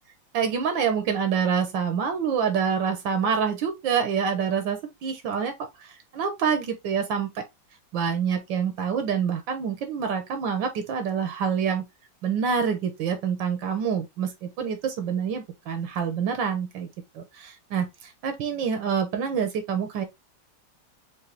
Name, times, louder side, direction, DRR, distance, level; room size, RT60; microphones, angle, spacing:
voice 1, 0.3-7.4 7.9-11.9 12.2-16.9 17.1-20.0, right 7 dB, 80° right, 1.5 m, -27 dB
4.8 x 2.7 x 3.0 m
omnidirectional pair, 2.1 m